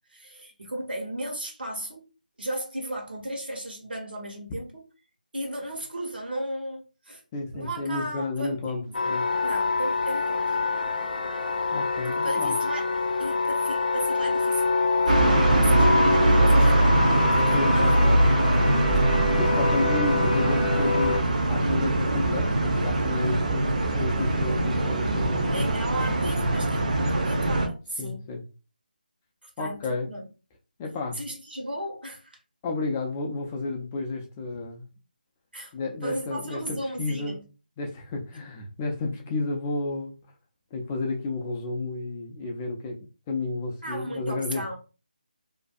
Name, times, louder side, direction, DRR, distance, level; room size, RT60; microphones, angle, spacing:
voice 1, 0.1-2.1 2.4-4.9 5.3-7.2 7.5-9.0 9.4-10.6 12.1-12.9 13.2-14.8 15.1-15.2 15.6-17.0 17.3-18.3 25.5-28.3 29.4-30.2 31.1-32.4 35.5-35.7 36.0-37.5 43.8-44.8, right 1 dB, 85° right, 1.0 m, -35 dB
voice 2, 7.3-9.3 11.7-12.5 17.5-18.1 19.4-23.7 23.9-25.6 28.0-28.4 29.6-30.1 30.8-31.2 32.6-34.9 35.7-37.4 37.8-40.2 40.7-44.8, left 3 dB, 15° left, 0.3 m, -31 dB
sound 1, 8.9-21.2, left 4 dB, 70° left, 0.5 m, -26 dB
sound 2, 15.1-27.7, right 1 dB, 50° right, 0.6 m, -22 dB
2.5 x 2.2 x 2.5 m
figure-of-eight pair, 165°, 5 cm